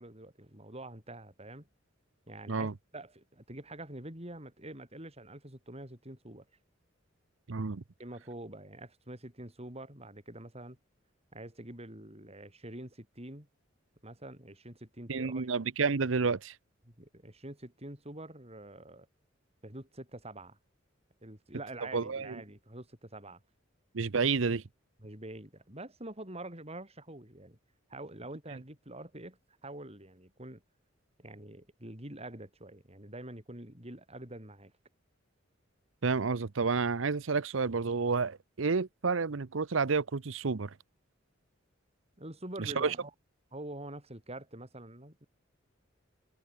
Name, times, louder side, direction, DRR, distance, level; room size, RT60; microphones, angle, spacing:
voice 1, 0.0-1.7 2.3-6.5 8.0-10.8 11.3-13.5 14.0-15.5 16.9-19.1 19.6-20.6 21.2-23.4 25.0-27.6 27.9-30.6 31.2-34.7 42.2-43.1 43.5-45.3, right 1 dB, 30° right, 7.7 m, -46 dB
voice 2, 7.5-7.8 15.1-16.5 21.9-22.4 23.9-24.6 36.0-40.7 42.6-42.9, right 4 dB, 75° right, 0.8 m, -30 dB
head